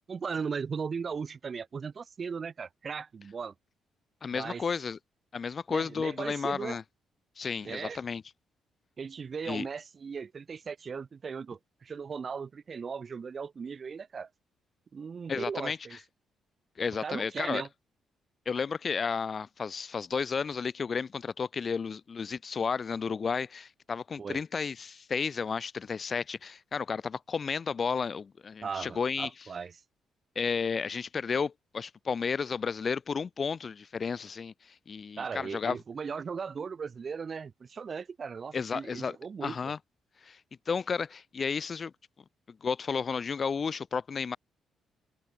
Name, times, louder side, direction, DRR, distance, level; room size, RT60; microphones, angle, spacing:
voice 1, 0.1-3.5 4.3-4.6 5.7-6.8 7.6-8.0 9.0-14.3 14.9-16.0 17.0-17.7 24.2-24.4 28.6-29.7 35.2-39.7, right 6 dB, 40° right, 5.7 m, -37 dB
voice 2, 4.2-5.0 5.3-6.8 7.4-8.2 9.4-9.7 15.3-16.0 16.8-17.6 18.5-29.3 30.4-35.8 38.5-39.2 39.4-39.8 40.2-40.4 40.7-41.9 42.6-44.4, left 5 dB, 40° left, 2.4 m, -32 dB
cardioid pair, 90°, 0 cm